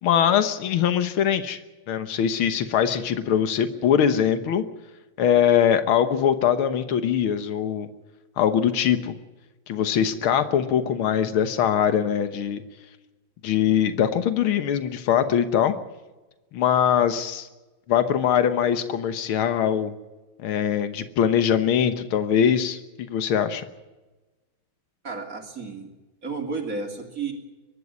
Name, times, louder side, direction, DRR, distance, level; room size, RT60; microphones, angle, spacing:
voice 1, 0.0-1.6 1.9-4.6 5.2-7.9 8.4-9.1 9.7-12.6 13.4-15.7 16.5-17.5 17.9-20.0 20.4-23.6, left 9 dB, 85° left, 10 dB, 2.0 m, -22 dB
voice 2, 25.0-25.9 26.2-27.3, right 4 dB, 40° right, 4 dB, 3.4 m, -32 dB
23.0 x 12.5 x 9.7 m, 1.1 s
omnidirectional pair, 2.2 m